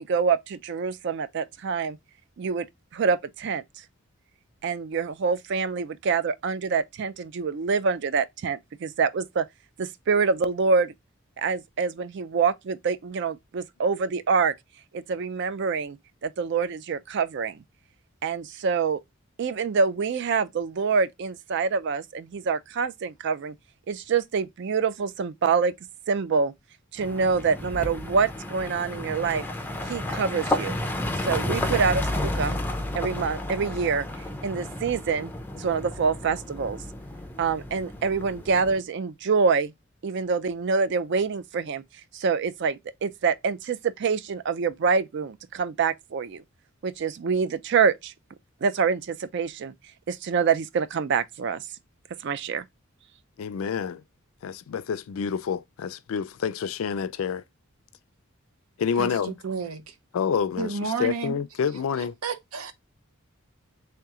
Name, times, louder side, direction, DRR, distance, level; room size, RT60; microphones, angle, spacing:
voice 1, 0.0-2.0 2.4-2.7 2.9-3.6 4.6-9.5 9.8-10.9 11.4-14.5 14.9-16.0 16.2-17.6 18.2-19.0 19.4-23.5 23.9-25.7 26.1-26.5 26.9-29.4 29.9-30.8 31.2-32.6 32.9-34.1 34.4-35.3 35.6-36.8 37.4-39.7 40.0-41.8 42.1-46.4 46.8-48.1 48.6-49.7 50.1-51.6 52.2-52.6, right 5 dB, 55° right, 0.4 m, -26 dB
sound 1, 27.0-38.8, left 1 dB, 10° left, 0.4 m, -32 dB
voice 2, 53.4-54.0 54.4-57.4 58.8-59.4 60.1-62.2, left 7 dB, 75° left, 0.4 m, -28 dB
voice 3, 59.0-59.9 60.6-61.4 62.0-62.7, right 5 dB, 85° right, 0.7 m, -31 dB
3.3 x 2.9 x 3.5 m
head